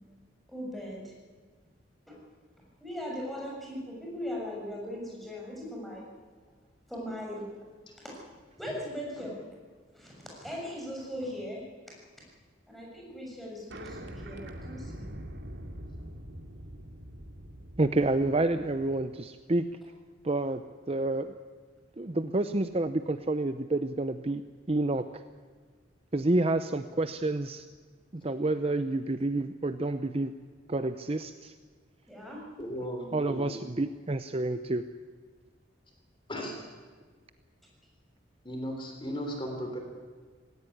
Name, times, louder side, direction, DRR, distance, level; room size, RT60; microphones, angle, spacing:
voice 1, 0.5-1.1 2.1-2.2 2.8-6.1 6.9-7.5 8.0-8.2 8.6-9.4 9.9-12.0 12.7-15.1 32.1-32.4, equal, ahead, -3 dB, 6.8 m, -39 dB
sound 1, 13.7-19.0, equal, 60° right, 2.5 m, -44 dB
voice 2, 17.8-19.6 20.2-20.6 20.9-21.4 22.0-24.4 24.7-25.1 26.1-27.6 28.2-30.3 30.7-31.5 33.1-34.8, right 2 dB, 30° right, 10 dB, 0.7 m, -29 dB
voice 3, 32.6-33.5 36.3-36.6 38.4-39.8, equal, 25° left, 3 dB, 3.4 m, -36 dB
18.0 x 18.0 x 9.8 m, 1.5 s
head